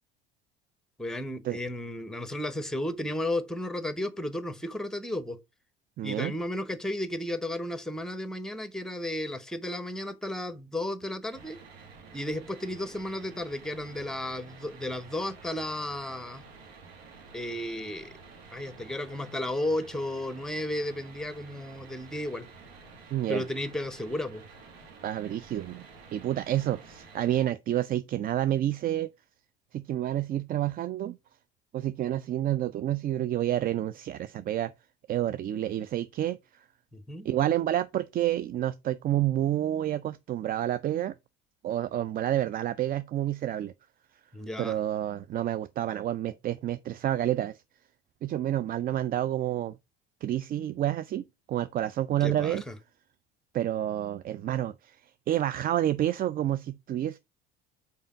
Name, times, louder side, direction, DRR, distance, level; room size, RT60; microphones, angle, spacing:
voice 1, 1.0-5.4 6.0-11.6 12.1-16.4 17.3-18.1 18.5-22.5 23.3-24.4 36.9-37.3 44.3-44.8 52.2-52.7, left 1 dB, ahead, 0.9 m, -33 dB
voice 2, 6.0-6.3 23.1-23.4 25.0-25.9 26.1-29.1 29.7-31.2 31.7-34.7 35.1-36.4 37.2-41.1 41.6-43.7 44.6-47.6 48.2-49.7 50.2-52.6 53.5-55.0 55.3-57.2, right 12 dB, 30° right, 0.4 m, -29 dB
sound 1, 11.3-27.5, right 4 dB, 75° right, 1.7 m, -50 dB
5.4 x 4.6 x 5.0 m
hypercardioid pair, 65°, 30 cm